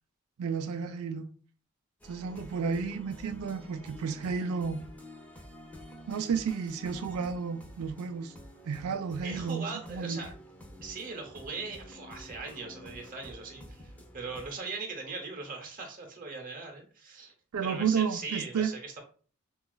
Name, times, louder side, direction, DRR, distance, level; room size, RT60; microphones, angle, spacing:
voice 1, 0.4-1.2 2.1-4.8 6.1-8.3 8.7-10.3 17.5-18.7, right 6 dB, 85° right, 0.4 m, -32 dB
sound 1, 2.0-14.5, left 1 dB, 5° left, 0.4 m, -49 dB
voice 2, 9.2-10.3 10.8-17.3 17.6-19.0, right 4 dB, 40° right, 0.7 m, -40 dB
3.8 x 2.3 x 2.3 m
head